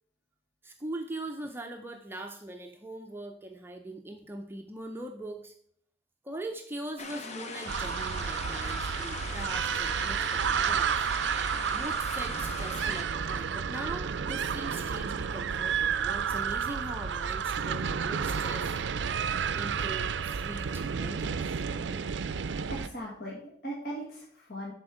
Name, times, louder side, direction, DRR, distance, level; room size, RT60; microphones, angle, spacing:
voice 1, 0.6-5.5 6.2-11.0 11.7-18.7 19.5-22.0, right 1 dB, 15° right, 3 dB, 0.5 m, -41 dB
sound 1, 7.0-13.0, left 3 dB, 40° left, 0.9 m, -40 dB
sound 2, 7.7-22.9, right 7 dB, 80° right, 0.4 m, -31 dB
voice 2, 22.7-24.7, right 1 dB, 60° left, -3 dB, 1.6 m, -39 dB
10.5 x 4.4 x 4.9 m, 0.66 s
head